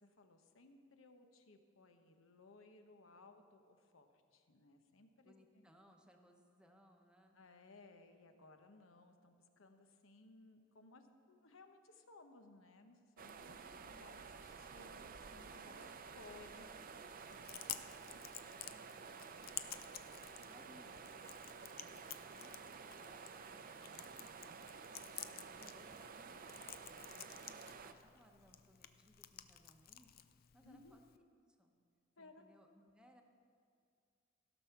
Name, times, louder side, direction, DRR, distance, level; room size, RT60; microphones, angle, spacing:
voice 1, 0.0-5.7 7.3-16.7 20.7-20.8 30.6-31.0 32.2-32.5, left 2 dB, 80° left, 7 dB, 0.9 m, -61 dB
voice 2, 5.2-7.4 15.7-15.9 16.5-17.1 17.8-21.7 22.0-24.3 25.1-27.0 27.4-30.3 30.5-31.2 31.5-31.7 32.2-33.2, equal, 5° right, 2 dB, 0.9 m, -67 dB
sound 1, 13.2-27.9, right 5 dB, 45° right, 0.5 m, -52 dB
Chewing mastication, 17.2-31.2, left 11 dB, 50° left, 0.4 m, -53 dB
16.0 x 6.2 x 5.8 m, 2.2 s
head